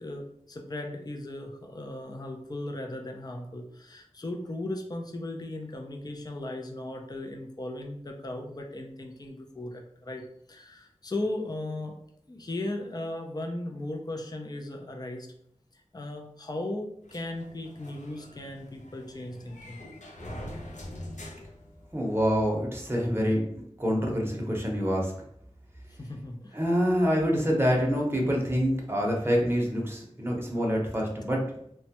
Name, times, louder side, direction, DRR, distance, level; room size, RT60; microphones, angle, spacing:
voice 1, 0.0-12.0 12.3-15.3 15.9-19.8 26.0-26.6, left 1 dB, 30° left, 2 dB, 0.4 m, -37 dB
sound 1, 17.1-22.3, left 1 dB, 80° left, 0.6 m, -44 dB
voice 2, 21.9-25.1 26.5-31.5, equal, 20° right, -1 dB, 0.7 m, -26 dB
3.1 x 2.2 x 2.8 m, 0.70 s
wide cardioid pair, 50°, 12 cm